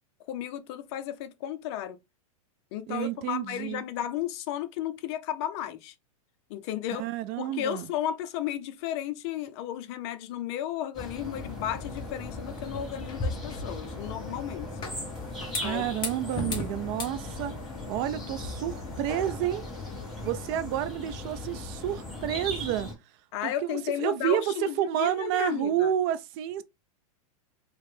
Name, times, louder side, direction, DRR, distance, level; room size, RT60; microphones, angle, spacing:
voice 1, 0.3-2.0 2.7-5.9 6.5-7.0 7.4-14.7 15.6-16.1 23.3-25.9, left 11 dB, 50° left, 0.6 m, -34 dB
voice 2, 2.9-3.8 7.0-7.9 15.6-17.5 17.9-19.7 20.2-22.9 23.4-26.6, right 12 dB, 40° right, 0.4 m, -30 dB
sound 1, 10.9-22.9, left 2 dB, ahead, 1.8 m, -38 dB
sound 2, 11.2-20.4, left 3 dB, 25° left, 1.0 m, -39 dB
3.2 x 2.8 x 3.2 m
supercardioid pair, 140°, 18 cm